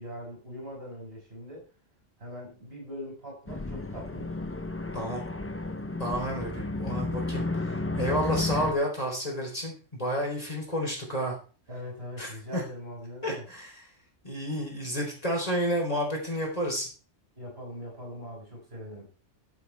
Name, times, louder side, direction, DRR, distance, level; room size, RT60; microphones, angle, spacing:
voice 1, 0.0-1.6 2.2-4.3 8.2-8.8 11.7-13.5 17.3-19.1, equal, 50° right, -2 dB, 6.7 m, -41 dB
sound 1, 3.5-8.7, left 2 dB, 15° left, 0.7 m, -32 dB
voice 2, 6.0-11.4 12.2-12.6 13.2-13.9 14.2-16.9, equal, 30° left, 0 dB, 4.0 m, -31 dB
14.5 x 8.0 x 3.4 m, 0.37 s
omnidirectional pair, 1.3 m